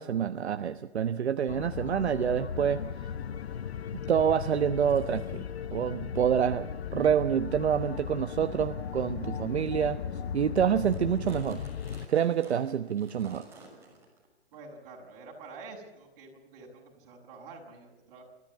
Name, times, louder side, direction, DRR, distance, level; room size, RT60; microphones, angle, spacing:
voice 1, 0.0-2.8 4.1-5.4 5.7-10.0 10.3-11.6 12.1-13.5, right 8 dB, 75° right, 9 dB, 1.2 m, -27 dB
sound 1, 1.5-12.1, left 8 dB, 65° left, 1.1 m, -37 dB
sound 2, 4.8-5.4 6.2-6.3 6.9-7.1 7.7-7.8 8.5-8.7 9.2-9.4 9.8-9.9 10.0-10.3 10.6-14.3 14.5-14.7 15.5-15.6, right 2 dB, 10° right, 6.5 m, -53 dB
voice 2, 14.5-18.2, right 3 dB, 35° right, 1 dB, 6.8 m, -48 dB
29.0 x 14.0 x 8.5 m, 1.0 s
hypercardioid pair, 155°, 33 cm